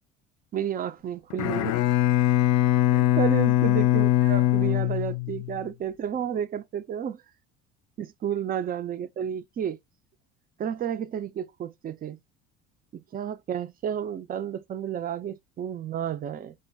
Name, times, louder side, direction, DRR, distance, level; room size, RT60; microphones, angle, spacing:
voice 1, 0.5-1.8 2.9-7.2 8.0-9.8 10.6-12.2 13.1-16.5, right 9 dB, 25° right, 0.4 m, -31 dB
Bowed string instrument, 1.3-5.6, left 15 dB, 55° left, 0.4 m, -22 dB
2.3 x 2.1 x 3.9 m
hypercardioid pair, 70°, 34 cm